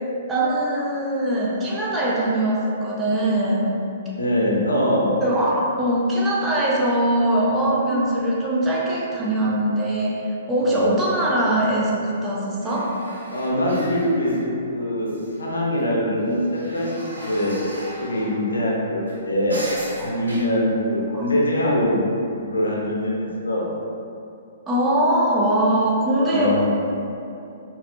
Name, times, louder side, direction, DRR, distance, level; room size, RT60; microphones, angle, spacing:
voice 1, 0.3-3.7 5.2-13.0 20.0-20.1 21.1-21.3 24.7-26.7, right 1 dB, 15° right, -6 dB, 0.5 m, -22 dB
voice 2, 4.1-5.2 10.6-11.0 13.3-14.4 14.7-17.5 18.0-19.6 20.0-22.0 22.3-23.7 26.2-26.6, left 1 dB, 70° left, -4 dB, 0.6 m, -23 dB
sound 1, 12.6-14.8 15.0-15.8 16.2-22.2 22.8-22.9, equal, 70° right, 0.8 m, -39 dB
4.0 x 2.0 x 2.6 m, 2.7 s
figure-of-eight pair, 115°, 0 cm